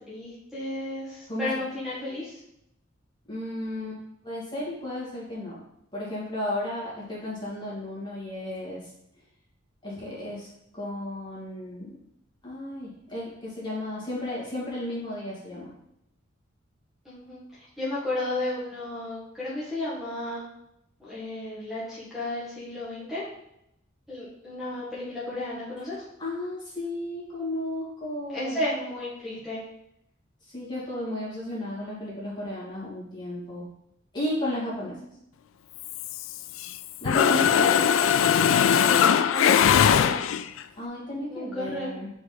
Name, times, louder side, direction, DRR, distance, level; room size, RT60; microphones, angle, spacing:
voice 1, 0.1-2.4 17.0-20.5 21.0-23.2 24.1-26.0 28.3-29.6 34.8-34.9 38.7-40.2 41.3-42.0, left 1 dB, ahead, -10 dB, 1.5 m, -33 dB
voice 2, 3.3-5.6 5.9-8.8 9.8-10.5 10.7-12.0 12.4-15.7 25.9-28.6 30.4-33.7 34.1-35.0 37.0-37.8 40.8-42.1, left 1 dB, 25° left, -7 dB, 2.4 m, -33 dB
Mechanisms, 35.8-36.8 37.1-40.6, left 8 dB, 70° left, 0.3 m, -21 dB
5.2 x 4.8 x 4.0 m, 0.79 s
head